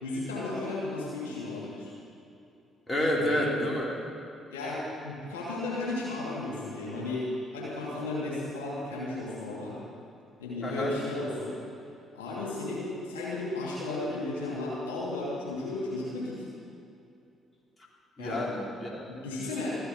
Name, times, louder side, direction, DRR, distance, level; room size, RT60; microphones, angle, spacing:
voice 1, 0.0-1.9 3.1-3.5 4.5-7.2 7.5-9.8 10.4-11.6 12.1-16.4 18.2-18.4 19.1-19.8, left 2 dB, 80° left, -7 dB, 2.9 m, -34 dB
voice 2, 2.9-4.0 10.6-10.9 18.2-19.1, equal, 25° left, -2 dB, 3.6 m, -29 dB
14.0 x 8.0 x 8.3 m, 2.6 s
figure-of-eight pair, 45°, 0 cm